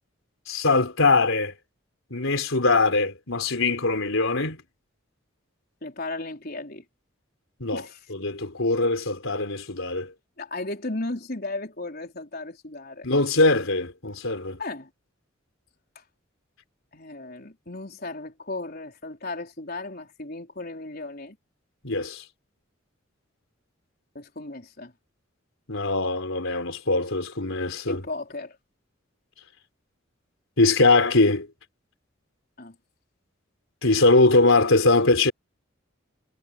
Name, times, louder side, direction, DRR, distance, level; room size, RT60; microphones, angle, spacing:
voice 1, 0.5-1.5 2.1-4.6 7.6-7.8 8.1-10.1 13.0-14.6 21.8-22.2 25.7-28.0 30.6-31.5 33.8-35.3, left 3 dB, 85° left, 4.0 m, -22 dB
voice 2, 5.8-6.8 7.7-8.0 8.8-8.9 10.4-13.1 14.6-14.9 15.9-16.0 16.9-21.4 24.1-24.9 27.9-28.6 32.6-32.8, left 2 dB, 50° left, 4.5 m, -35 dB
head